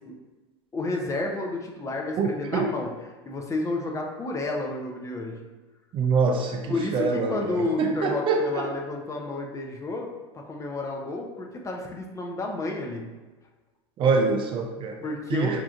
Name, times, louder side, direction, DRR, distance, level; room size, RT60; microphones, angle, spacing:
voice 1, 0.7-2.9 3.3-5.4 6.7-13.0 15.0-15.6, left 2 dB, 20° left, 1 dB, 0.6 m, -31 dB
voice 2, 2.2-2.7 5.9-8.6 14.0-15.0 15.3-15.6, right 4 dB, 35° right, 3 dB, 0.4 m, -25 dB
4.4 x 2.4 x 2.4 m, 1.2 s
hypercardioid pair, 95°, 14 cm